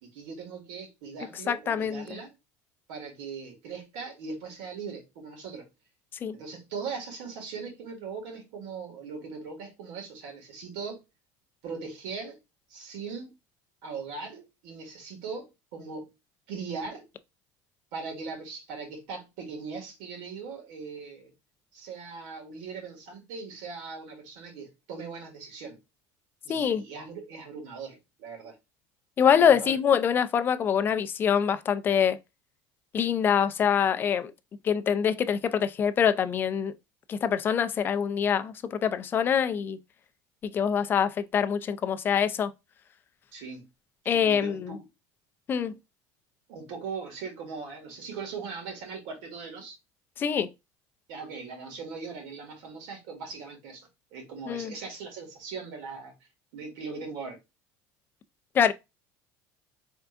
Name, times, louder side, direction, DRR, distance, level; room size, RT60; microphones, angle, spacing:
voice 1, 0.0-2.3 2.9-5.7 6.3-11.0 11.6-12.4 12.7-13.3 13.8-16.1 16.5-17.1 17.9-21.3 21.7-25.8 26.4-28.6 29.4-29.8 43.3-43.6 44.0-44.8 46.5-49.8 51.1-56.1 56.5-57.4, right 5 dB, 80° right, 1.8 m, -40 dB
voice 2, 1.5-2.0 6.2-6.4 26.5-26.8 29.2-32.2 32.9-34.3 34.6-36.7 37.1-39.8 40.4-42.5 44.1-44.8 45.5-45.8 50.2-50.5 54.5-54.7 58.5-58.7, left 8 dB, 25° left, 0.3 m, -25 dB
4.4 x 3.5 x 2.4 m
cardioid pair, 150°, 8 cm